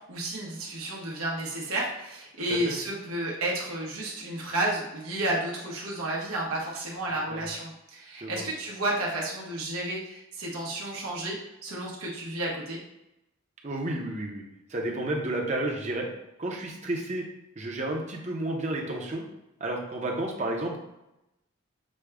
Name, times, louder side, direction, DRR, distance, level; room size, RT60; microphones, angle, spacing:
voice 1, 0.0-12.8, right 1 dB, 80° right, -3 dB, 0.9 m, -32 dB
voice 2, 7.1-7.5 8.2-8.4 13.6-14.4 14.7-16.1 16.4-17.2 17.6-19.2 19.6-20.8, right 1 dB, 35° right, 0 dB, 0.7 m, -31 dB
6.3 x 2.2 x 3.4 m, 0.89 s
head